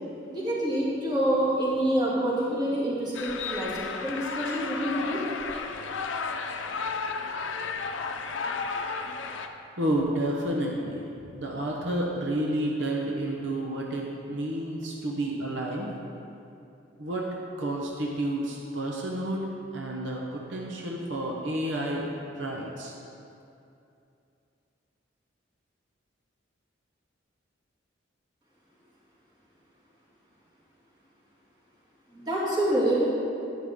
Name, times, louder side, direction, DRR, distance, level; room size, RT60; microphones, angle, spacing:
voice 1, 0.3-5.2 32.1-33.0, right 1 dB, 25° right, -8 dB, 2.5 m, -27 dB
sound 1, 3.1-9.5, left 4 dB, 85° left, 0.6 m, -33 dB
voice 2, 9.8-11.1 11.3-15.9 17.0-17.2 17.6-22.1 22.4-22.9, right 1 dB, 75° right, -2 dB, 1.0 m, -30 dB
11.0 x 9.3 x 3.7 m, 2.7 s
head